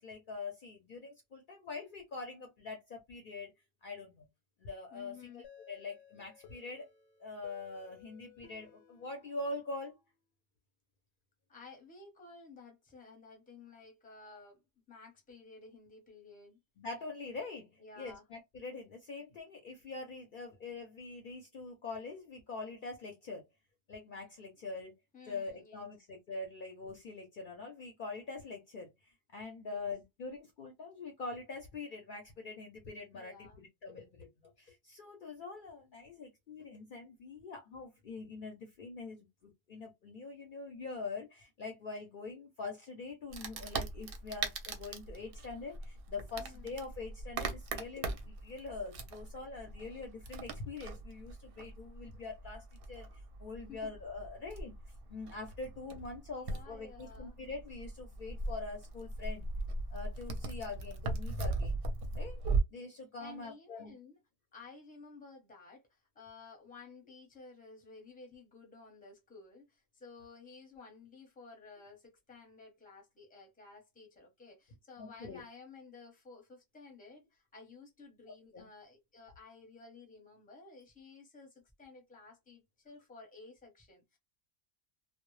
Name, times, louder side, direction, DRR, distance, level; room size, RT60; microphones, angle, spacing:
voice 1, 0.0-3.5 3.8-4.3 4.6-6.9 7.2-10.0 16.8-17.7 18.0-23.4 23.9-24.9 25.3-28.9 29.3-34.3 34.6-53.1 53.4-54.7 55.1-59.5 59.9-61.8 62.2-62.4 62.7-63.9 75.0-75.4 78.5-78.7, left 3 dB, 55° left, 0.7 m, -44 dB
voice 2, 4.9-5.5 11.5-14.6 14.9-16.6 17.8-18.3 25.1-25.9 29.6-29.9 33.1-33.6 46.4-46.7 53.7-53.9 56.3-57.4 63.2-64.2 64.5-84.2, left 4 dB, 10° left, 0.7 m, -54 dB
sound 1, 5.4-10.1, left 10 dB, 90° left, 1.0 m, -58 dB
Wood, 43.3-62.6, right 3 dB, 65° right, 0.7 m, -39 dB
2.0 x 2.0 x 3.0 m
omnidirectional pair, 1.1 m